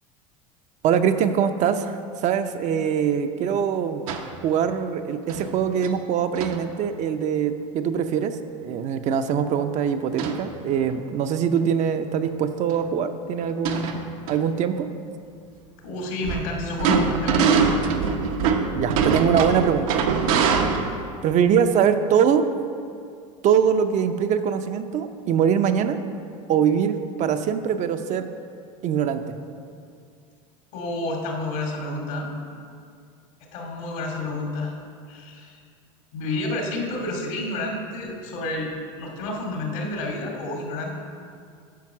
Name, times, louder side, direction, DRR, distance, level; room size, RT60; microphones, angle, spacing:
voice 1, 0.8-2.0 2.2-4.1 4.4-14.0 14.3-14.9 18.7-20.0 21.2-22.5 23.4-26.0 26.5-28.3 28.8-29.4, right 8 dB, 45° right, 8 dB, 0.6 m, -23 dB
sound 1, 4.1-4.3 5.3-5.5 5.8-5.9 6.3-6.6 10.2-10.4 10.9-11.0 12.2-12.3 12.7-12.8 13.4-14.3 16.2-21.0, right 5 dB, 80° right, 0.9 m, -23 dB
voice 2, 15.8-17.5 30.7-32.3 33.5-34.7 35.1-35.6 36.1-38.7 39.0-40.9, left 2 dB, 75° left, 0 dB, 2.3 m, -30 dB
9.3 x 5.2 x 6.0 m, 2.3 s
supercardioid pair, 110°, 17 cm